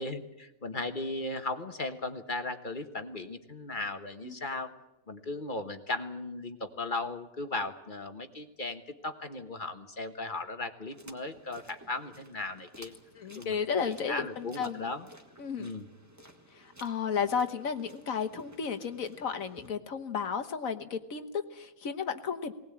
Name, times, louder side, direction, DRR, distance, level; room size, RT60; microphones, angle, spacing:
voice 1, 0.0-4.7 5.1-12.9 13.4-13.5 13.8-15.1 15.6-15.9, left 2 dB, 35° left, 7 dB, 1.3 m, -37 dB
sound 1, 10.9-19.7, right 1 dB, 10° right, 1.7 m, -55 dB
voice 2, 13.1-14.9 15.4-15.7 16.5-22.5, left 6 dB, 70° left, 8 dB, 1.5 m, -33 dB
19.5 x 19.0 x 8.7 m, 0.95 s
omnidirectional pair, 1.5 m